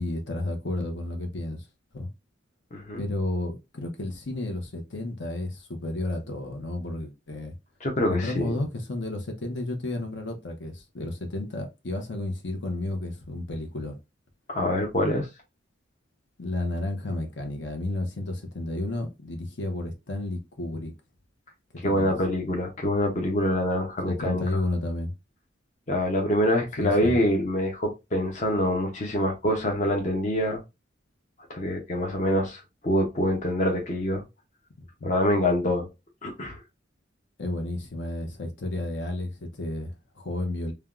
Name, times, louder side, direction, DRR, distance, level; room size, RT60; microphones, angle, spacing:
voice 1, 0.0-1.7 1.9-2.1 3.0-7.5 8.1-14.0 16.4-20.9 21.7-22.1 24.1-25.1 26.8-27.2 34.8-35.1 37.4-40.7, left 2 dB, 70° left, 0.7 m, -32 dB
voice 2, 7.8-8.5 14.5-15.3 21.8-24.4 25.9-30.6 31.5-34.2 35.0-35.9 36.2-36.6, left 1 dB, 40° left, 0.6 m, -25 dB
3.3 x 2.2 x 2.3 m
head